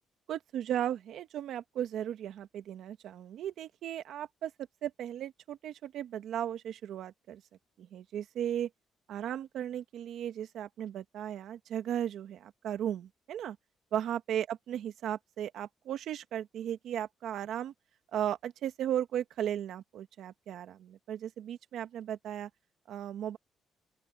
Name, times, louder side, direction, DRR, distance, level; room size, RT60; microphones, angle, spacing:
voice 1, 0.3-4.5 4.8-7.4 7.8-8.7 9.1-13.6 13.9-17.7 18.1-22.5 22.9-23.4, right 10 dB, 75° right, 1.6 m, -36 dB
open air
cardioid pair, 90°, 0 cm